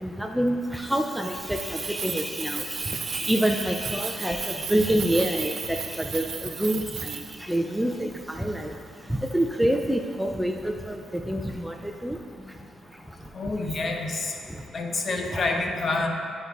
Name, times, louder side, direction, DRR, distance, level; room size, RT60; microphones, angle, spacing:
voice 1, 0.0-7.1 7.5-8.1 8.4-8.7 9.1-11.0 11.3-11.7 12.0-12.2 15.3-15.4, right 1 dB, 5° right, 4 dB, 0.4 m, -26 dB
Keys jangling, 1.4-7.6, right 7 dB, 65° right, 0.4 m, -35 dB
voice 2, 13.3-14.3 14.7-16.1, left 3 dB, 45° left, 2 dB, 0.8 m, -27 dB
11.0 x 5.4 x 2.4 m, 2.3 s
cardioid pair, 90°, 0 cm